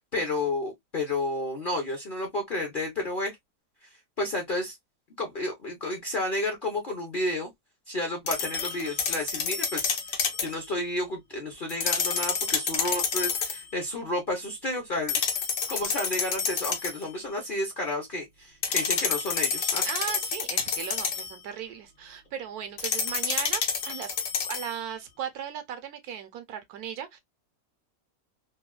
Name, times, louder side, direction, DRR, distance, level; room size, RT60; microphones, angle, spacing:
voice 1, 0.0-3.4 4.2-4.8 5.2-7.5 7.9-15.2 15.7-19.8, left 1 dB, 45° left, 0.7 m, -31 dB
sound 1, 8.3-10.5 11.7-13.6 15.1-17.0 18.6-21.3 22.8-24.8, left 6 dB, 90° left, 1.4 m, -29 dB
voice 2, 19.8-24.1 24.4-27.2, right 9 dB, 75° right, 1.0 m, -37 dB
3.3 x 2.2 x 2.2 m
omnidirectional pair, 1.8 m